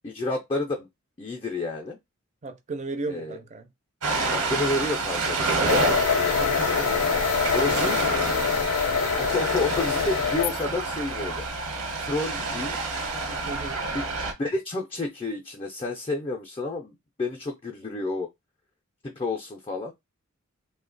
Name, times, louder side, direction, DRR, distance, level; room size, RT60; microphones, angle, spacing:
voice 1, 0.0-0.9 1.2-2.0 3.1-3.4 4.3-7.0 7.5-8.1 9.2-11.5 12.0-12.8 13.9-18.3 19.0-19.9, left 2 dB, 25° left, 0.4 m, -31 dB
voice 2, 2.4-3.7 6.3-6.7 7.5-7.8 13.5-13.8, right 3 dB, 35° right, 0.4 m, -35 dB
Ocean, 4.0-14.3, right 3 dB, 85° right, 1.1 m, -28 dB
sound 1, 5.7-10.6, left 7 dB, 90° left, 0.4 m, -25 dB
2.8 x 2.1 x 3.9 m
head